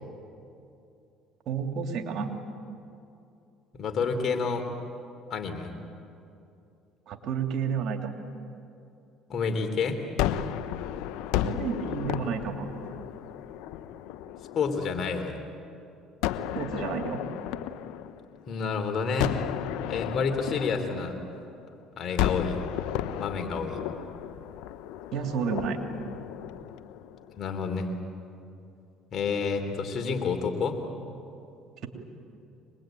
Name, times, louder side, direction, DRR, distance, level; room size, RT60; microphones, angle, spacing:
voice 1, 1.5-2.3 7.1-8.2 11.4-12.7 16.5-17.2 25.1-25.8, right 6 dB, 60° right, 5 dB, 2.8 m, -31 dB
voice 2, 3.7-4.7 5.3-5.7 9.3-10.0 14.6-15.4 18.5-19.4 19.9-21.1 22.0-22.6 23.1-23.8 27.4-27.9 29.1-30.8, left 5 dB, 50° left, 5 dB, 3.5 m, -29 dB
Gunshot gunfire, 10.2-15.3 16.2-18.6 19.2-21.7 22.2-27.4, left 11 dB, 80° left, 0.8 m, -33 dB
24.5 x 21.0 x 9.2 m, 2.6 s
supercardioid pair, 80°, 0 cm